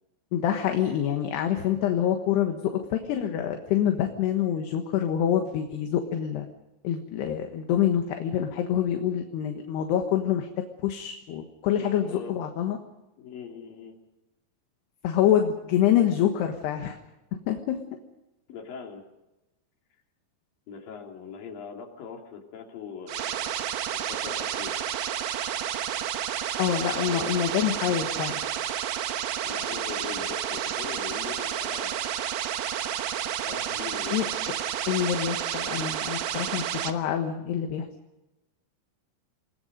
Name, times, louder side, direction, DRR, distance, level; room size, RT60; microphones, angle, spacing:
voice 1, 0.3-6.5 6.8-10.5 10.8-12.8 15.0-17.0 17.5-17.8 26.6-28.4 34.1-34.2 34.9-37.9, left 10 dB, 65° left, 4 dB, 3.2 m, -26 dB
voice 2, 11.8-12.4 13.2-14.0 18.5-19.0 20.7-24.9 27.1-27.3 29.4-32.3 33.5-34.4, left 6 dB, 50° left, 1 dB, 4.3 m, -41 dB
sound 1, 23.1-36.9, right 10 dB, 65° right, 2.6 m, -30 dB
28.5 x 21.0 x 5.3 m, 0.99 s
omnidirectional pair, 5.6 m